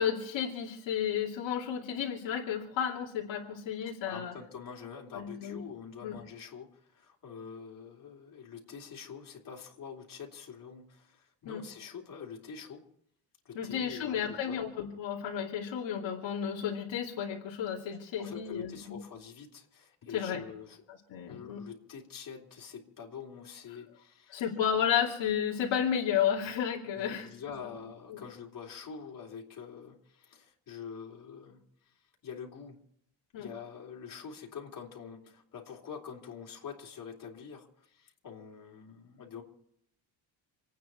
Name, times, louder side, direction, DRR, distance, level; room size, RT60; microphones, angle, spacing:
voice 1, 0.0-4.3 5.1-5.6 6.0-6.1 11.4-11.6 13.5-19.0 20.1-20.4 21.1-21.6 24.3-27.3 27.7-27.8 28.1-28.2 33.3-33.5, left 8 dB, 70° left, -2 dB, 2.7 m, -32 dB
voice 2, 3.8-12.8 13.4-14.6 18.2-20.8 21.3-24.5 26.9-31.9 32.2-32.8 33.4-39.4, left 6 dB, 45° left, -2 dB, 3.8 m, -45 dB
28.0 x 9.4 x 4.6 m, 0.75 s
cardioid pair, 135°, 47 cm